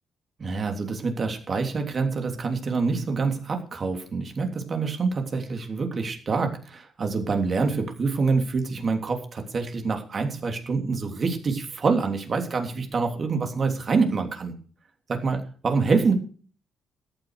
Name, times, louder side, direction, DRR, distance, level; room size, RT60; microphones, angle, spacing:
voice 1, 0.4-14.5 15.1-16.1, right 4 dB, 45° right, 4 dB, 3.1 m, -26 dB
14.0 x 9.3 x 6.5 m, 0.42 s
cardioid pair, 90°, 0 cm